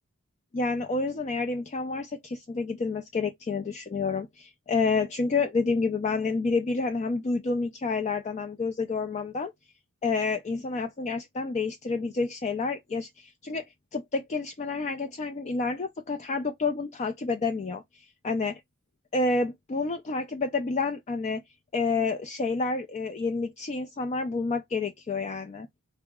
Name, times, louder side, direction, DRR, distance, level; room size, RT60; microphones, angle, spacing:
voice 1, 0.5-9.5 10.0-13.6 13.9-17.8 18.2-18.5 19.1-21.4 21.7-25.7, left 4 dB, 30° left, 0.3 m, -29 dB
3.8 x 2.0 x 3.5 m
head